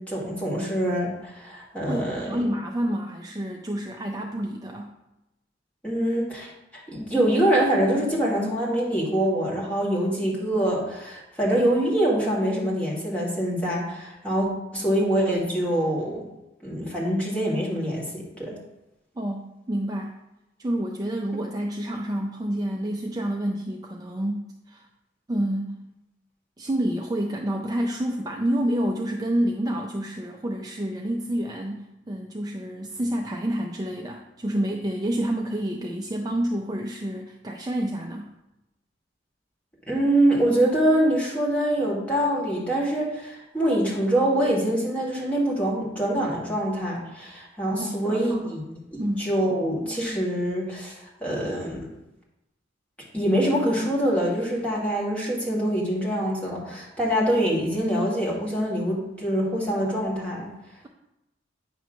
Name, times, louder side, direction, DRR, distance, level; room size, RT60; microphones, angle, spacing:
voice 1, 0.0-2.4 5.8-14.5 14.7-16.3 16.6-18.5 39.9-48.6 48.9-51.8 53.1-60.5, right 1 dB, 5° left, -5 dB, 1.8 m, -25 dB
voice 2, 1.9-4.9 19.2-20.2 20.6-24.9 25.3-25.8 26.6-38.3 47.8-48.6 49.0-49.3, right 1 dB, 20° right, 1 dB, 0.4 m, -28 dB
9.1 x 3.1 x 6.1 m, 0.94 s
head